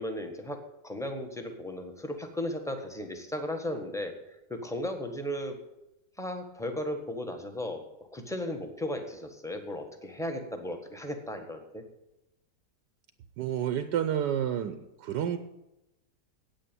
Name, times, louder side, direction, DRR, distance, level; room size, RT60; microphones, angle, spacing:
voice 1, 0.0-5.6 6.2-7.9 8.1-11.8, left 1 dB, ahead, 4 dB, 1.2 m, -36 dB
voice 2, 13.4-15.4, right 9 dB, 80° right, 10 dB, 1.3 m, -30 dB
9.0 x 8.8 x 9.1 m, 0.88 s
omnidirectional pair, 1.9 m